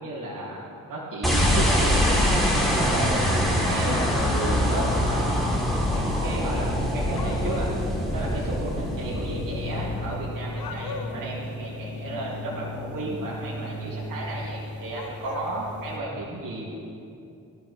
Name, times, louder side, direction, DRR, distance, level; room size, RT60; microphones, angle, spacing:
voice 1, 0.0-5.4 5.9-6.7 6.9-7.7 8.1-16.7, right 2 dB, 55° right, -7 dB, 3.2 m, -33 dB
sound 1, 1.2-2.0 4.1-5.0 7.1-7.8 10.5-11.3 14.9-15.5, left 6 dB, 60° left, 1.1 m, -38 dB
sound 2, 1.2-10.6, equal, ahead, 3.8 m, -24 dB
sound 3, 3.6-16.0, left 1 dB, 35° left, 2.5 m, -37 dB
17.5 x 12.5 x 3.6 m, 2.7 s
hypercardioid pair, 40°, 40 cm